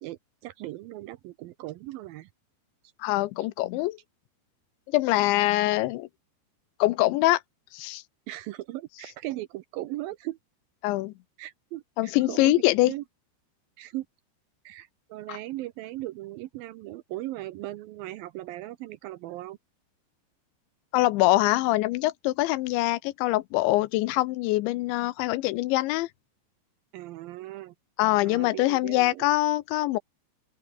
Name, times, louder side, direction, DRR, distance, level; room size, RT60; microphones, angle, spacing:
voice 1, 0.0-2.3 8.3-10.4 11.4-12.5 12.9-13.0 13.8-14.1 14.7-19.6 26.9-27.7 28.3-29.2, right 16 dB, 90° right, 2.0 m, -38 dB
voice 2, 3.0-4.0 4.9-6.1 6.8-7.4 7.7-8.0 10.8-11.1 12.0-12.9 15.3-15.4 20.9-26.1 28.0-30.0, left 18 dB, 85° left, 3.1 m, -24 dB
open air
omnidirectional pair, 5.3 m